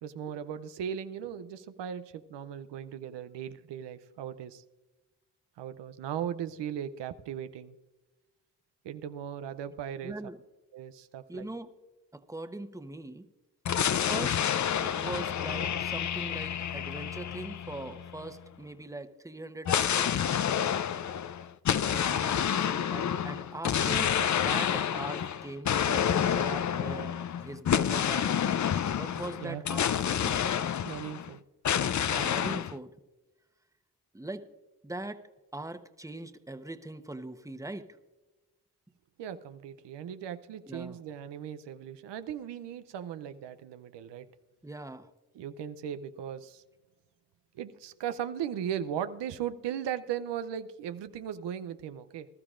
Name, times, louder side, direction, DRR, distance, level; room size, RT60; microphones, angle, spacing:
voice 1, 0.0-4.6 5.6-7.8 8.8-10.3 10.7-11.5 29.4-29.6 30.8-31.4 39.2-44.3 45.3-46.6 47.5-52.3, right 9 dB, 90° right, 11 dB, 0.6 m, -38 dB
voice 2, 10.0-10.4 11.3-11.7 12.1-13.2 14.1-14.4 14.8-20.2 21.7-28.4 28.9-30.4 32.1-32.9 34.1-34.5 34.8-35.2 35.5-37.9 40.7-41.0 44.6-45.1, right 2 dB, 10° right, 9 dB, 1.0 m, -41 dB
sound 1, 13.6-18.4 19.6-31.3 31.6-32.7, left 9 dB, 45° left, 0.5 m, -29 dB
20.0 x 12.5 x 2.5 m, 1.1 s
supercardioid pair, 45°, 41 cm